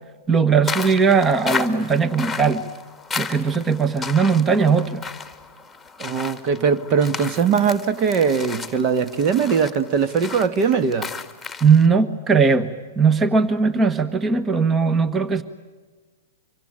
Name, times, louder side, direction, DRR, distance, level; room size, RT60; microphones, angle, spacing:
voice 1, 0.3-2.6 3.1-5.0 11.6-15.4, right 5 dB, 20° right, 12 dB, 1.3 m, -19 dB
sound 1, 0.7-11.9, left 4 dB, 5° left, 2.1 m, -34 dB
voice 2, 6.0-11.1, right 6 dB, 40° right, 12 dB, 1.5 m, -20 dB
26.5 x 24.5 x 8.8 m, 1.4 s
hypercardioid pair, 110°, 0 cm